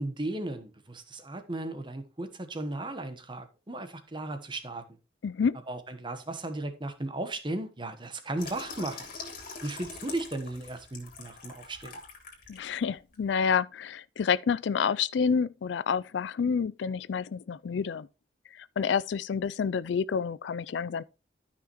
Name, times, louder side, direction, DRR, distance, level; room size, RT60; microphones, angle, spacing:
voice 1, 0.0-4.8 5.7-9.0 9.6-12.0, right 2 dB, 25° right, 1.2 m, -36 dB
voice 2, 5.2-5.6 12.5-18.1 18.5-21.0, left 6 dB, 75° left, 0.4 m, -28 dB
Water tap faucet / Sink (filling or washing), 8.4-12.7 13.1-13.3, left 4 dB, 50° left, 2.8 m, -43 dB
13.0 x 5.7 x 3.0 m
head